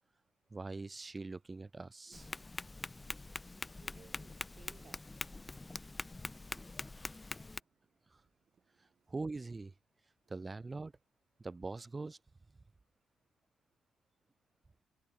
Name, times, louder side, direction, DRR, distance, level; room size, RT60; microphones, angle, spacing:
voice 1, 0.5-2.3 9.1-9.7 10.3-10.9 11.4-12.2, right 3 dB, 25° right, 0.9 m, -42 dB
Tap, 2.1-7.6, left 2 dB, 20° left, 1.0 m, -44 dB
voice 2, 3.6-9.1, right 7 dB, 55° right, 3.5 m, -67 dB
supercardioid pair, 65°, 0 cm